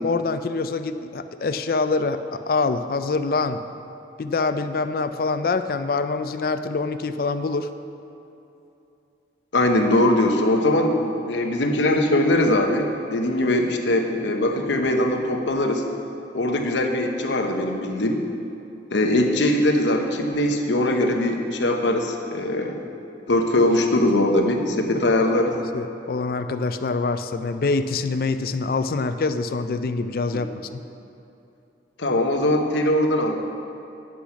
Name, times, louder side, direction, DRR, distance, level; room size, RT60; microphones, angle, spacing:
voice 1, 0.0-3.6 4.2-7.7 25.7-30.8, left 3 dB, 55° left, 10 dB, 0.4 m, -25 dB
voice 2, 9.5-15.8 16.3-18.2 18.9-22.8 23.3-25.6 30.3-30.5 32.0-33.4, left 1 dB, 85° left, 3 dB, 0.9 m, -21 dB
9.8 x 6.2 x 5.8 m, 2.9 s
head